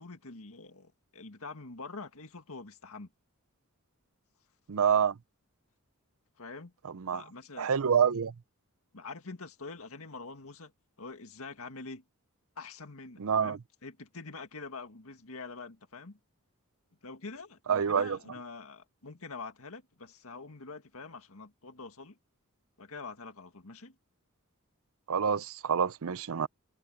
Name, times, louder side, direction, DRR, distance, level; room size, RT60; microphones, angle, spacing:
voice 1, 0.0-3.1 6.4-6.7 7.1-7.7 8.1-8.2 8.9-10.7 11.0-12.0 12.6-16.2 17.0-22.2 22.8-24.0, left 3 dB, 70° left, 2.1 m, -45 dB
voice 2, 4.7-5.1 6.9-7.2 7.6-8.3 13.2-13.6 17.7-18.2 25.1-26.5, right 7 dB, 70° right, 0.5 m, -27 dB
head